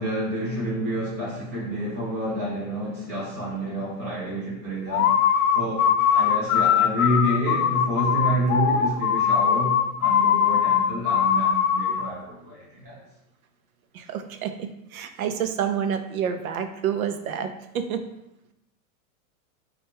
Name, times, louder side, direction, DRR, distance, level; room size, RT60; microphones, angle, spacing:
voice 1, 0.0-5.1 5.5-13.0, equal, 15° right, -8 dB, 0.4 m, -28 dB
sound 1, 4.9-12.1, left 8 dB, 70° left, 0.5 m, -21 dB
voice 2, 13.9-18.0, right 8 dB, 75° right, 7 dB, 0.7 m, -28 dB
4.6 x 2.5 x 4.4 m, 0.84 s
supercardioid pair, 180°, 43 cm